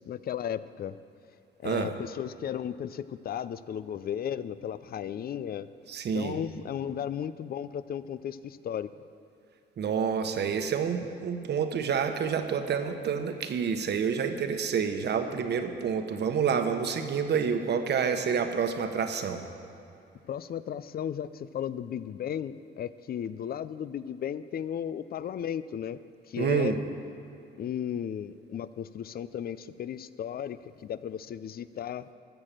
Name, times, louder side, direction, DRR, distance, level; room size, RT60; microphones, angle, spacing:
voice 1, 0.1-1.0 1.6-5.7 6.1-8.9 20.2-26.0 26.3-26.8 27.6-32.1, left 9 dB, 50° left, 15 dB, 0.5 m, -35 dB
voice 2, 5.9-6.4 9.8-19.4 26.4-26.8, right 6 dB, 60° right, 7 dB, 1.1 m, -28 dB
14.0 x 6.6 x 7.5 m, 2.6 s
cardioid pair, 90°, 20 cm